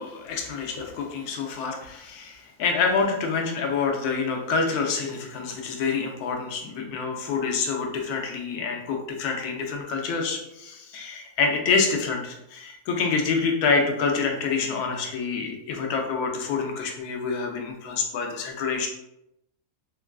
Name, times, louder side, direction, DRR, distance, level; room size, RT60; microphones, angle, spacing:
voice 1, 0.0-18.9, left 5 dB, 75° left, 1 dB, 1.1 m, -27 dB
3.7 x 2.3 x 2.3 m, 0.83 s
omnidirectional pair, 1.7 m